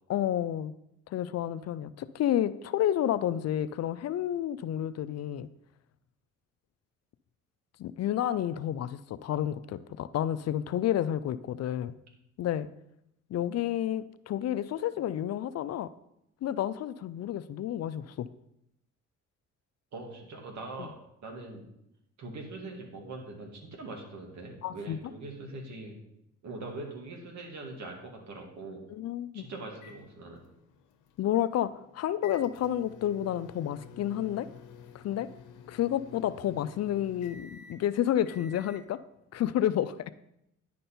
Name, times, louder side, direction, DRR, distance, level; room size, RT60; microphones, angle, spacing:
voice 1, 0.1-0.7 1.1-5.5 7.8-11.9 12.4-12.7 13.3-15.9 16.4-18.3 20.8-20.9 24.6-25.0 28.9-29.4 31.2-34.5 34.9-35.3 35.7-39.0 39.3-40.0, left 11 dB, 55° left, 14 dB, 0.5 m, -30 dB
voice 2, 19.9-21.6 22.2-26.0 26.4-28.9 29.3-30.4, right 2 dB, 70° right, 1 dB, 2.2 m, -42 dB
sound 1, 29.7-38.9, left 6 dB, 90° left, 0.8 m, -52 dB
10.0 x 5.2 x 4.3 m, 0.81 s
cardioid pair, 90°, 30 cm